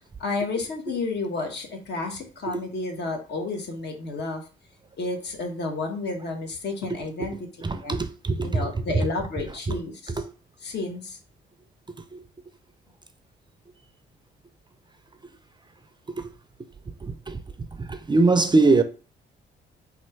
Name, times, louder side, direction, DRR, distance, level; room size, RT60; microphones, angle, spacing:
voice 1, 0.2-4.4 5.0-7.3 7.8-7.9 8.4-10.1 10.6-11.2, left 3 dB, 60° left, 1.4 m, -31 dB
voice 2, 7.6-8.8 9.5-9.8 10.1-10.2 12.0-12.2 16.2-16.3 17.0-17.4 17.8-18.8, right 3 dB, 25° right, 0.4 m, -23 dB
4.2 x 2.5 x 4.5 m
cardioid pair, 90°, 20 cm